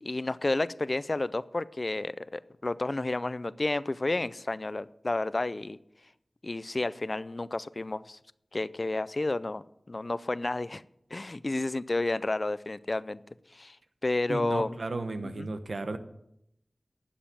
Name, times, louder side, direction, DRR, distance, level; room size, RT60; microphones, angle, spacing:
voice 1, 0.0-5.8 6.4-8.2 8.5-10.8 11.1-13.2 13.5-13.8 14.0-14.7 15.2-15.5, left 2 dB, 50° left, 17 dB, 0.4 m, -31 dB
voice 2, 14.3-16.0, right 3 dB, 85° right, 9 dB, 1.0 m, -34 dB
11.0 x 7.3 x 7.5 m, 0.79 s
wide cardioid pair, 60°, 0 cm